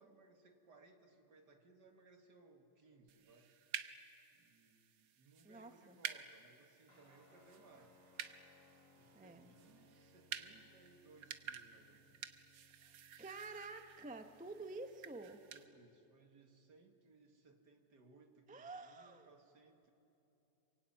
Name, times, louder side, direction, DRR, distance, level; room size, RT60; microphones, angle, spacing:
voice 1, 0.0-3.5 4.3-8.0 8.9-12.2 15.5-19.9, right 3 dB, 65° right, 4 dB, 2.5 m, -65 dB
sound 1, 3.1-15.7, right 9 dB, 80° right, 1.7 m, -51 dB
voice 2, 5.4-6.0 9.1-9.5 12.8-15.4 18.5-19.3, right 3 dB, 5° right, 7 dB, 0.6 m, -50 dB
Guitar, 6.9-15.7, left 1 dB, 55° left, 4.2 m, -69 dB
27.0 x 24.0 x 9.2 m, 3.0 s
omnidirectional pair, 2.0 m